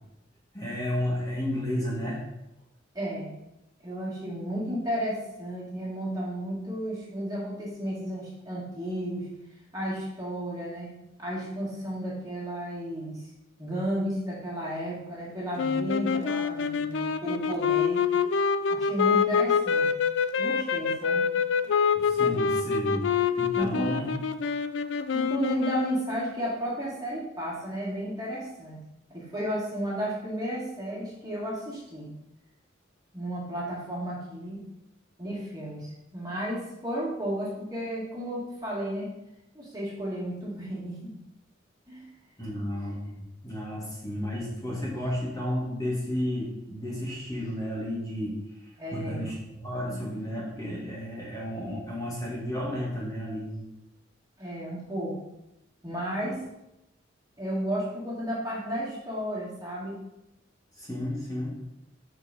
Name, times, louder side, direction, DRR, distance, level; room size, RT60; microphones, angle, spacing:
voice 1, 0.5-2.2 21.9-24.2 42.4-53.6 60.8-61.6, left 1 dB, 20° left, -6 dB, 1.7 m, -32 dB
voice 2, 2.9-3.3 3.8-9.3 9.7-10.9 11.2-13.2 13.6-18.0 18.7-19.9 20.4-21.3 22.2-22.4 23.5-24.1 25.1-28.8 29.1-32.1 33.1-34.6 35.2-39.1 39.5-41.1 41.9-42.0 48.8-49.3 49.9-50.0 54.4-55.1 55.8-56.4 57.4-60.0, equal, 20° right, -7 dB, 2.1 m, -33 dB
sound 1, 15.6-26.3, left 6 dB, 65° left, 0.4 m, -26 dB
5.1 x 4.4 x 5.4 m, 0.88 s
head